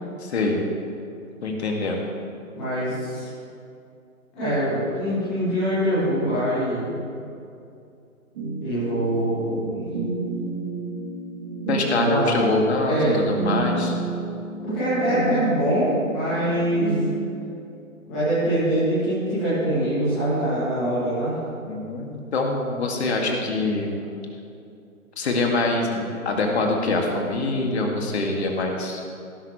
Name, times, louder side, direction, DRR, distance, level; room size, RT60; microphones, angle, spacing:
voice 1, 0.2-0.6 1.4-2.0 11.7-13.9 21.7-23.9 25.2-29.0, left 2 dB, 50° left, 1 dB, 2.2 m, -24 dB
voice 2, 2.5-3.3 4.3-7.0 8.6-9.9 11.9-12.3 12.8-13.2 14.6-16.9 18.1-21.4, right 1 dB, ahead, -15 dB, 0.4 m, -24 dB
sound 1, 8.4-17.3, right 3 dB, 40° right, 2.9 m, -30 dB
17.5 x 11.0 x 3.2 m, 2.5 s
figure-of-eight pair, 130°, 41 cm